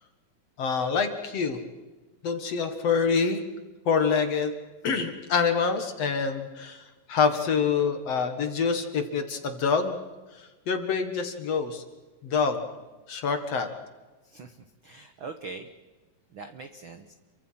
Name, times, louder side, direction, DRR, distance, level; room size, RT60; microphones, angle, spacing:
voice 1, 0.6-1.6 2.2-3.4 3.9-4.5 4.8-10.0 10.4-11.8 12.2-12.7 13.1-13.7, left 5 dB, 50° left, 7 dB, 2.3 m, -26 dB
voice 2, 14.2-14.6 14.8-15.7 16.3-17.1, right 4 dB, 65° right, 8 dB, 1.2 m, -42 dB
29.0 x 24.0 x 5.8 m, 1.2 s
omnidirectional pair, 4.2 m